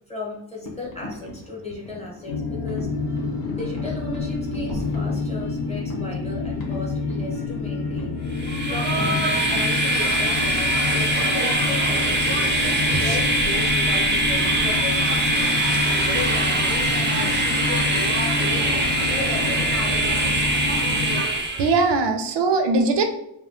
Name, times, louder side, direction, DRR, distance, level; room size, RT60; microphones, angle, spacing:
voice 1, 0.1-2.9 3.5-8.1 8.7-12.4 13.0-15.6 15.9-18.1 18.4-20.1, left 3 dB, 15° left, -4 dB, 0.7 m, -36 dB
sound 1, 0.6-17.3, equal, 50° left, 0.7 m, -40 dB
sound 2, 2.3-21.2, left 4 dB, 90° left, 0.6 m, -28 dB
Train, 8.3-21.8, right 1 dB, 30° right, 0.4 m, -22 dB
voice 2, 12.4-13.2 15.9-16.0 21.6-23.0, right 3 dB, 85° right, 5 dB, 0.5 m, -22 dB
2.2 x 2.2 x 3.6 m, 0.78 s
wide cardioid pair, 155°, 42 cm